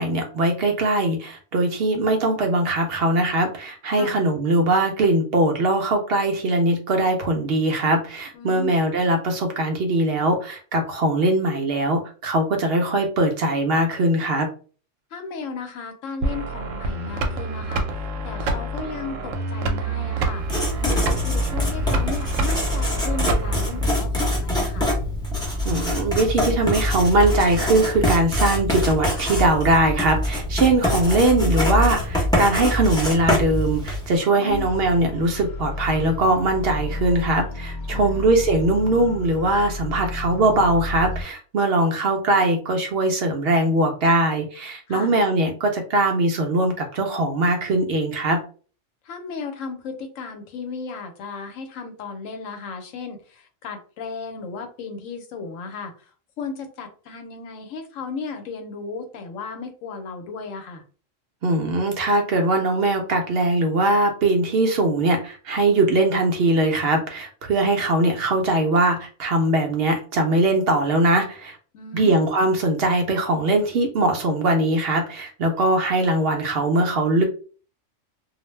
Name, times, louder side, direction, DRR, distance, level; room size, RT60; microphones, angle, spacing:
voice 1, 0.0-14.5 25.6-48.4 61.4-71.6 71.9-77.2, right 2 dB, 60° right, 3 dB, 0.7 m, -21 dB
voice 2, 8.3-8.7 15.1-17.8 18.2-20.5 20.8-25.0 34.3-34.7 37.9-38.3 44.9-45.1 49.1-55.9 56.4-60.8 71.7-72.2, left 5 dB, 90° left, 6 dB, 1.0 m, -35 dB
sound 1, 16.2-23.8, right 2 dB, 80° right, 1.0 m, -27 dB
Writing, 20.4-34.2, left 1 dB, 5° left, 0.5 m, -24 dB
sound 2, 34.5-41.2, left 2 dB, 65° left, 0.5 m, -32 dB
2.4 x 2.1 x 3.1 m, 0.39 s
omnidirectional pair, 1.3 m